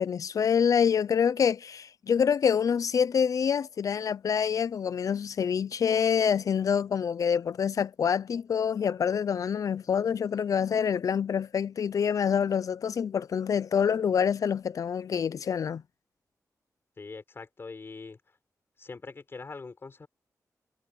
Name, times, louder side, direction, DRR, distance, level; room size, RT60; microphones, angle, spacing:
voice 1, 0.0-15.8, left 7 dB, 65° left, 0.5 m, -26 dB
voice 2, 17.0-18.2 18.8-20.1, left 4 dB, 40° left, 5.2 m, -42 dB
wide cardioid pair, 140°, 6 cm